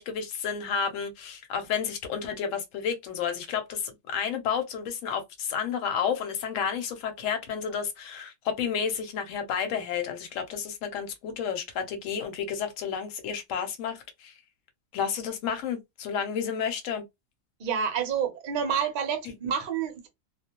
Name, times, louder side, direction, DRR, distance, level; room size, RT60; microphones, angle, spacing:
voice 1, 0.0-14.3 14.9-17.0 19.2-19.3, left 7 dB, 70° left, 1.0 m, -31 dB
voice 2, 17.6-20.1, right 7 dB, 50° right, 0.6 m, -28 dB
2.4 x 2.0 x 2.8 m
omnidirectional pair, 1.5 m